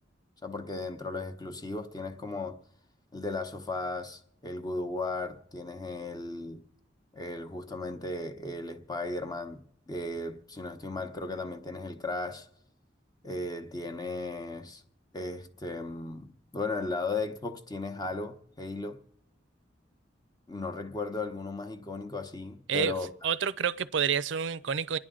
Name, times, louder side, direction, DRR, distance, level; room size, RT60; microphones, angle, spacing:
voice 1, 0.4-2.6 3.1-6.6 7.1-12.5 13.2-14.8 15.1-19.0 20.5-23.3, left 2 dB, 20° left, 0.9 m, -36 dB
voice 2, 23.2-25.0, right 7 dB, 80° right, 0.5 m, -28 dB
28.5 x 10.0 x 3.8 m
head